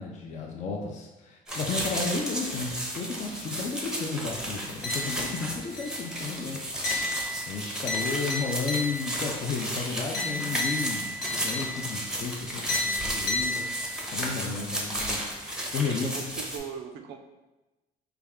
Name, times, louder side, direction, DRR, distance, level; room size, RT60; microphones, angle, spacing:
voice 1, 0.0-6.9 7.5-13.7 14.1-15.2 15.7-16.2, left 4 dB, 45° left, 1 dB, 0.5 m, -33 dB
sound 1, 1.5-16.6, equal, 5° right, 0.6 m, -34 dB
sound 2, 4.8-5.4 5.8-6.2 6.8-9.3 10.1-12.1 12.7-14.1, left 2 dB, 85° left, 0.9 m, -33 dB
voice 2, 15.8-17.2, right 7 dB, 75° right, 6 dB, 0.4 m, -39 dB
3.3 x 2.4 x 3.5 m, 1.1 s
cardioid pair, 110°, 17 cm